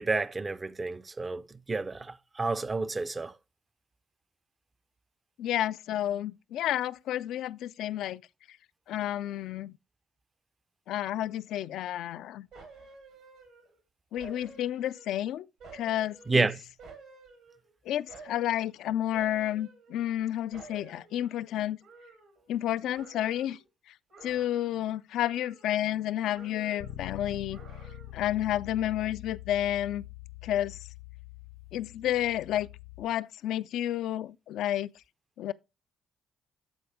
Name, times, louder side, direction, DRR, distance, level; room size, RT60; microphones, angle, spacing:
voice 1, 0.0-1.4 1.7-3.3 16.3-16.6, right 3 dB, 30° right, 0.6 m, -29 dB
voice 2, 5.4-8.2 8.9-9.7 10.9-12.5 14.1-15.5 15.7-16.5 17.9-21.8 22.5-23.6 24.2-27.6 28.1-30.0 30.4-30.8 31.7-32.7 33.0-34.9 35.4-35.5, left 12 dB, 70° left, 0.3 m, -31 dB
sound 1, 12.5-13.8 14.2-15.2 15.6-17.7 18.1-18.7 19.1-20.3 20.5-22.7 22.9-23.6 24.1-24.9 25.2-26.1 26.3-27.1 27.5-28.3 28.7-28.8, right 4 dB, 75° right, 3.6 m, -52 dB
Bass guitar, 26.8-33.0, left 14 dB, 85° left, 1.2 m, -45 dB
13.0 x 4.7 x 3.5 m
hypercardioid pair, 45°, 0 cm